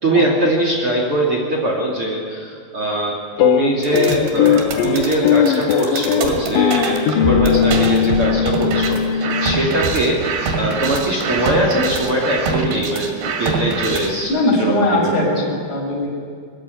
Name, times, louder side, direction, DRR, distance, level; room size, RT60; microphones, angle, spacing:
voice 1, 0.0-10.2 10.6-13.1 13.4-15.1, right 1 dB, 35° right, -1 dB, 2.8 m, -21 dB
sound 1, 3.4-9.9, left 10 dB, 85° left, 1.9 m, -19 dB
sound 2, 3.8-14.2, right 4 dB, 70° right, 4.1 m, -24 dB
voice 2, 14.3-16.1, left 1 dB, 60° left, -2 dB, 7.8 m, -19 dB
20.5 x 15.0 x 9.8 m, 2.2 s
omnidirectional pair, 5.1 m